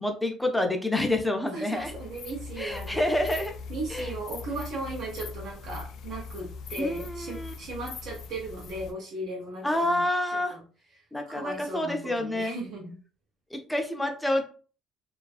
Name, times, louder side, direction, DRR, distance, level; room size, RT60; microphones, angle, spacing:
voice 1, 0.0-1.9 2.6-3.5 3.9-4.1 6.8-7.5 9.6-10.5 11.1-12.6 13.5-14.4, left 1 dB, 5° left, 4 dB, 0.5 m, -28 dB
voice 2, 1.5-10.0 10.3-10.6 10.9-12.9, right 2 dB, 65° right, -2 dB, 0.6 m, -37 dB
sound 1, 1.8-8.9, left 5 dB, 65° left, 0.4 m, -41 dB
2.5 x 2.3 x 2.3 m, 0.38 s
cardioid pair, 115°, 0 cm